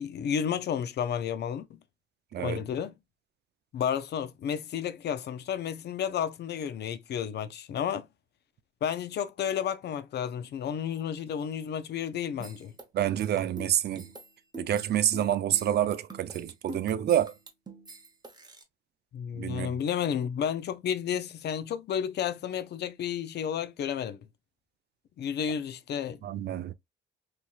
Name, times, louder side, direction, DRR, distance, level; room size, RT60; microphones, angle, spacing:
voice 1, 0.0-1.7 2.4-2.9 3.7-8.1 8.8-12.7 19.1-24.2 25.2-26.2, left 8 dB, 60° left, 0.5 m, -32 dB
voice 2, 2.3-2.6 12.9-14.1 14.6-17.3 19.3-19.7 26.2-26.7, right 11 dB, 55° right, 0.4 m, -28 dB
sound 1, 12.4-18.6, right 2 dB, 20° right, 0.8 m, -45 dB
3.0 x 2.8 x 2.2 m
cardioid pair, 90°, 20 cm